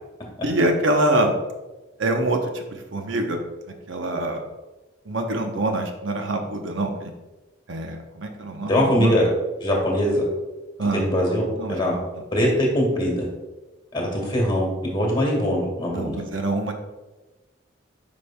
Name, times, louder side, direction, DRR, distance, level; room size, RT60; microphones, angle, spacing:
voice 1, 0.4-1.3 2.0-3.4 3.9-4.4 5.1-7.1 7.7-9.1 10.8-11.1 11.6-12.0 15.9-16.7, right 1 dB, 75° right, 4 dB, 0.8 m, -25 dB
voice 2, 8.7-9.3 9.6-10.2 10.9-11.9 12.3-13.2 13.9-16.2, equal, 25° left, -2 dB, 1.7 m, -22 dB
9.4 x 5.2 x 2.2 m, 1.1 s
head